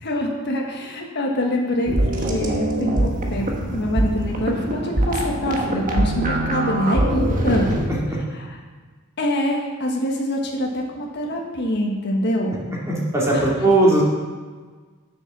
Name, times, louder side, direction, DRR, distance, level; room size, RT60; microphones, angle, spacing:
voice 1, 0.0-2.0 2.3-7.7 9.2-12.6 13.3-13.5, left 1 dB, 55° left, -1 dB, 1.6 m, -25 dB
sound 1, 1.9-7.9, right 1 dB, 40° right, 1.3 m, -23 dB
voice 2, 12.9-14.0, right 2 dB, 15° right, -5 dB, 2.5 m, -18 dB
8.3 x 6.9 x 6.3 m, 1.5 s
head